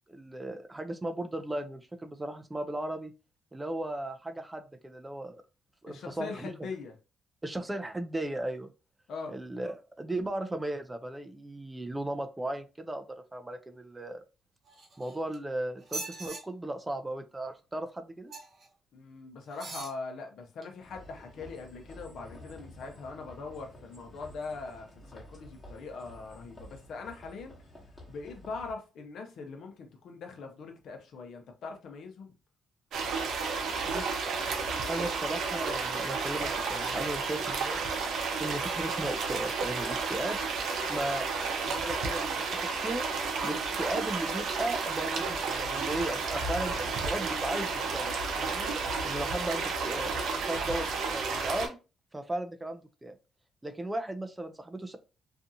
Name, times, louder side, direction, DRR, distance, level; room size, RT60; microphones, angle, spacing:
voice 1, 0.1-3.1 3.5-5.4 5.8-6.5 7.4-8.7 9.3-13.0 13.3-14.2 15.0-18.3 33.8-34.3 34.9-37.9 38.4-40.4 40.9-41.3 41.6-43.0 43.4-48.1 48.4-48.7 49.0-51.8 52.1-53.2 53.6-55.0, right 1 dB, 15° right, 0.4 m, -36 dB
voice 2, 5.9-6.9 9.1-9.4 18.9-27.6 28.1-32.3, left 4 dB, 70° left, 0.7 m, -41 dB
sound 1, 14.7-15.4 15.8-16.4 18.3-18.7 19.5-20.0 20.6-20.7, right 3 dB, 50° right, 0.9 m, -41 dB
sound 2, 20.8-28.7, left 1 dB, 25° left, 1.1 m, -51 dB
sound 3, 32.9-51.7, right 4 dB, 75° right, 0.5 m, -32 dB
2.6 x 2.3 x 2.6 m
cardioid pair, 90°, 0 cm